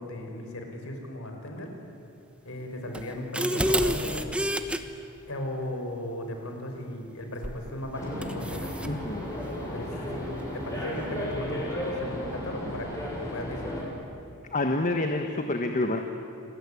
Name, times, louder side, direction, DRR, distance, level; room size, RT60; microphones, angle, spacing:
voice 1, 0.0-1.7 2.4-4.5 5.3-8.8 9.7-13.8, left 1 dB, 65° left, 4 dB, 5.0 m, -36 dB
sound 1, 2.9-4.8 7.4-7.7 8.2-8.9, equal, 5° right, 1.2 m, -28 dB
sound 2, 7.9-13.8, left 1 dB, 15° left, 7.0 m, -34 dB
voice 2, 8.8-9.3 9.9-10.1 14.5-16.0, left 2 dB, 35° left, 5 dB, 1.4 m, -28 dB
28.5 x 21.0 x 10.0 m, 2.5 s
head